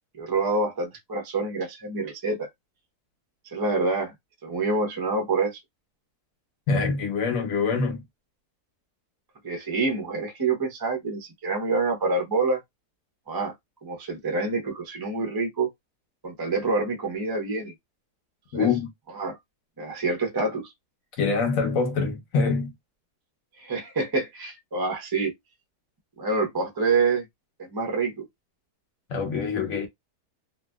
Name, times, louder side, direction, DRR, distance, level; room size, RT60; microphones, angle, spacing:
voice 1, 0.2-2.5 3.4-4.1 4.4-5.6 9.4-12.6 13.3-13.5 13.8-15.7 16.2-17.7 18.5-18.7 19.1-19.4 19.8-20.7 23.6-25.3 26.2-27.2 27.6-28.2, right 3 dB, 25° right, 0.5 m, -27 dB
voice 2, 6.7-8.0 18.5-18.9 21.2-22.7 29.1-29.9, left 4 dB, 60° left, 1.1 m, -25 dB
2.9 x 2.5 x 2.2 m
omnidirectional pair, 1.7 m